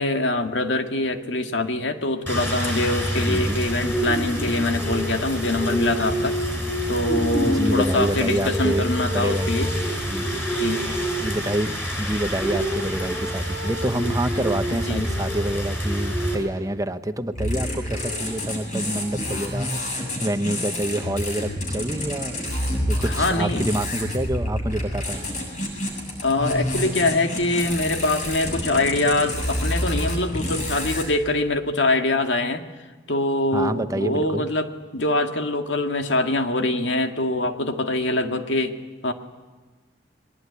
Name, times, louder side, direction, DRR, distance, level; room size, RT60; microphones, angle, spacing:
voice 1, 0.0-6.4 6.9-9.7 10.5-10.9 14.7-15.1 23.0-23.6 26.2-32.6 33.1-38.8 39.0-39.1, left 2 dB, 90° left, 6 dB, 2.0 m, -24 dB
Rain, 2.3-16.4, equal, 10° left, 6.8 m, -26 dB
voice 2, 3.2-3.6 7.4-8.9 9.1-9.5 10.1-10.5 11.2-22.6 22.9-25.3 33.5-34.4, right 1 dB, 20° right, 9 dB, 1.0 m, -27 dB
sound 1, 17.3-31.0, left 1 dB, 45° left, 7.5 m, -28 dB
23.0 x 20.0 x 9.7 m, 1.3 s
head